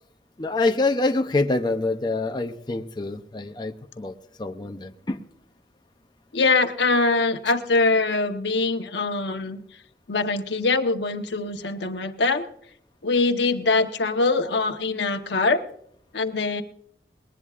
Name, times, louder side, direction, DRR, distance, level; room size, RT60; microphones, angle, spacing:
voice 1, 0.4-4.1 4.4-5.2, left 2 dB, 25° left, 5 dB, 0.6 m, -26 dB
voice 2, 6.3-9.6 10.1-12.4 13.0-15.6 16.1-16.6, left 3 dB, 75° left, 7 dB, 1.0 m, -23 dB
20.5 x 19.0 x 2.5 m, 0.69 s
head